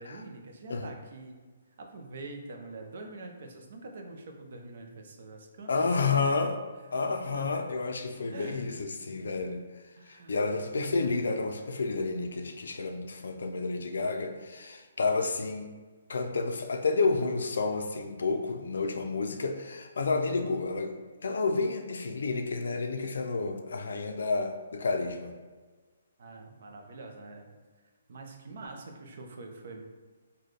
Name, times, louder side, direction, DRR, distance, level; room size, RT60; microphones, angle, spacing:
voice 1, 0.0-1.3 1.8-6.2 6.9-7.1 7.3-7.5 8.3-8.8 10.0-10.3 26.2-27.5 28.1-29.8, right 3 dB, 55° right, 3 dB, 0.5 m, -45 dB
voice 2, 5.7-6.6 6.9-9.6 10.1-15.7 16.1-20.9 21.2-25.3, left 3 dB, 80° left, 6 dB, 0.4 m, -30 dB
4.0 x 2.2 x 3.2 m, 1.4 s
hypercardioid pair, 170°, 0 cm